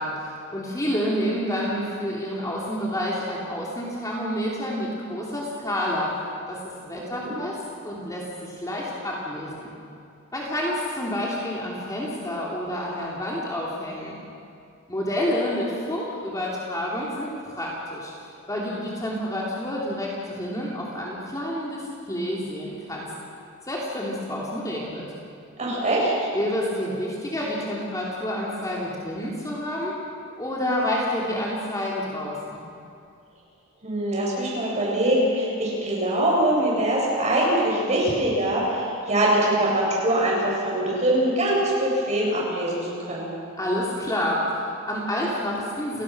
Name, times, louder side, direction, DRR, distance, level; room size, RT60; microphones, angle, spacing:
voice 1, 0.0-6.1 6.5-6.6 6.8-7.6 7.8-9.7 10.3-14.2 14.9-18.1 18.5-23.1 23.7-25.1 26.3-29.9 30.4-32.6 43.6-46.0, left 1 dB, 15° left, -4 dB, 3.1 m, -29 dB
voice 2, 6.9-7.3 25.6-26.3 33.8-43.3, right 1 dB, 35° right, -4 dB, 7.8 m, -23 dB
29.5 x 18.0 x 6.2 m, 2.5 s
head